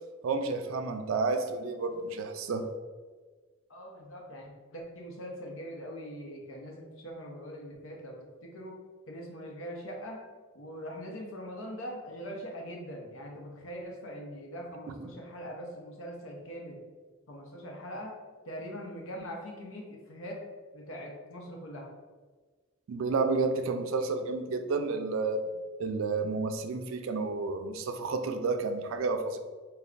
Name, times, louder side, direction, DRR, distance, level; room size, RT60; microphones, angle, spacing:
voice 1, 0.2-2.7 14.9-15.1 22.9-25.4 25.8-29.4, right 3 dB, 80° right, 7 dB, 0.3 m, -31 dB
voice 2, 3.7-8.7 9.1-10.2 10.5-16.8 17.3-18.1 18.5-20.4 20.7-21.9, equal, 80° left, 0 dB, 0.8 m, -42 dB
3.3 x 2.2 x 3.7 m, 1.4 s
head